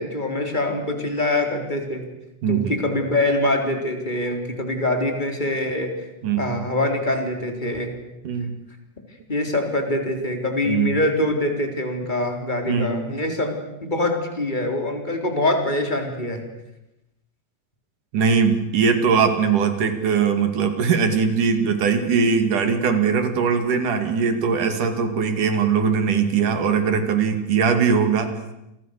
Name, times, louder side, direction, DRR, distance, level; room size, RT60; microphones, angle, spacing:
voice 1, 0.0-2.0 2.5-5.9 6.4-7.9 9.3-16.4, left 1 dB, 15° left, 4 dB, 4.0 m, -24 dB
voice 2, 2.4-2.7 6.2-6.6 8.2-8.6 10.6-10.9 12.7-13.0 18.1-28.3, right 6 dB, 85° right, 7 dB, 4.0 m, -20 dB
29.5 x 25.5 x 6.8 m, 0.89 s
omnidirectional pair, 3.6 m